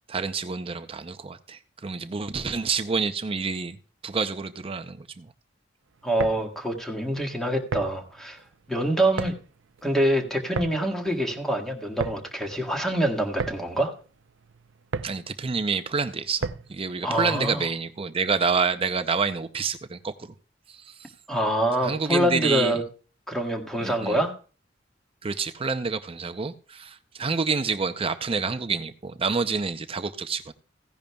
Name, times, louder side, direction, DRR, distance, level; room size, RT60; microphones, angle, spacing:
voice 1, 0.1-3.8 4.0-5.3 15.0-20.3 20.7-21.1 21.8-22.8 23.8-24.2 25.2-30.5, right 5 dB, 30° right, 0.5 m, -28 dB
voice 2, 6.0-8.4 8.7-9.3 9.8-13.9 17.0-17.6 21.3-22.8 23.3-24.3, right 1 dB, ahead, 1.6 m, -25 dB
sound 1, 6.0-16.9, right 4 dB, 80° right, 0.5 m, -36 dB
16.0 x 10.5 x 2.3 m
head